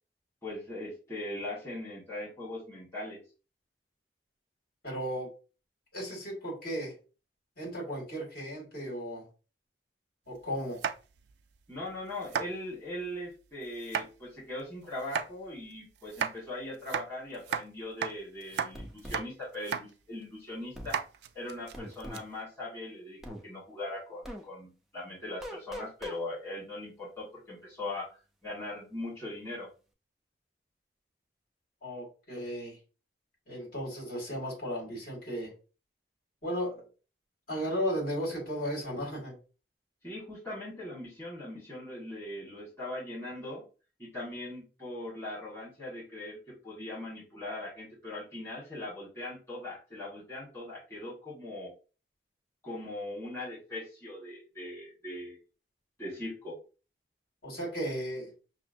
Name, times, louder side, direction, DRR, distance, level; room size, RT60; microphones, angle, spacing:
voice 1, 0.4-3.2 11.7-21.0 21.3-28.2 28.4-29.7 40.0-43.6 44.0-51.7 52.6-55.4 56.0-56.6, left 1 dB, 15° left, -8 dB, 1.5 m, -40 dB
voice 2, 4.8-5.3 5.9-6.9 7.6-9.2 10.3-10.8 31.8-32.8 33.5-35.5 36.4-36.9 37.5-39.3 57.4-58.3, equal, 55° left, -2 dB, 2.1 m, -35 dB
sound 1, 10.7-11.3 11.8-11.9 12.2-12.5 13.8-14.1 15.0-15.3 16.0-16.3 16.8-17.7 18.0-18.1 18.4-18.7 19.0-19.3 19.5-19.9 20.2-20.3 20.9-22.2, right 7 dB, 70° right, 0.3 m, -34 dB
sound 2, 18.7-19.2 20.7-20.9 21.7-22.3 23.2-23.4 24.2-24.4 25.4-26.2, equal, ahead, 0.4 m, -41 dB
5.7 x 2.0 x 2.6 m, 0.34 s
head